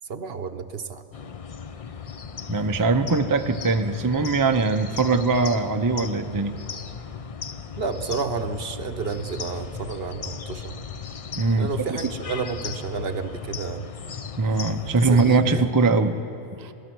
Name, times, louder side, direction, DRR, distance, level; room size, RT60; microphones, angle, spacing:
voice 1, 0.1-1.0 7.8-10.8 11.6-13.9 15.1-15.6, right 5 dB, 50° right, 8 dB, 1.0 m, -31 dB
sound 1, 1.1-15.4, left 6 dB, 50° left, 0.4 m, -37 dB
voice 2, 2.5-6.5 11.4-12.0 14.4-16.2 16.5-16.7, right 3 dB, 25° right, 6 dB, 0.4 m, -22 dB
26.0 x 18.0 x 6.2 m, 2.7 s
omnidirectional pair, 1.4 m